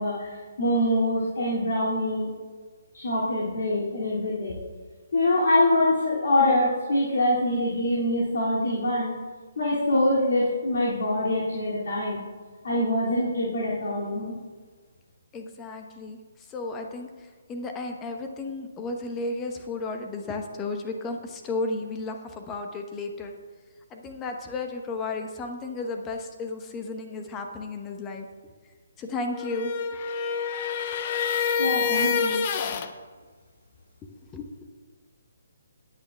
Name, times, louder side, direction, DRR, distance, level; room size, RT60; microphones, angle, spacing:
voice 1, 0.0-2.3 2.9-4.6 5.1-9.1 9.6-12.2 12.6-14.3 31.6-32.4, left 1 dB, 60° left, -6 dB, 2.5 m, -24 dB
voice 2, 15.3-23.3 23.9-28.3 29.0-29.7 34.0-34.6, left 3 dB, 15° left, 4 dB, 1.0 m, -34 dB
sound 1, 29.3-32.9, left 6 dB, 35° left, 0.7 m, -27 dB
19.5 x 8.7 x 2.3 m, 1.5 s
figure-of-eight pair, 140°, 0 cm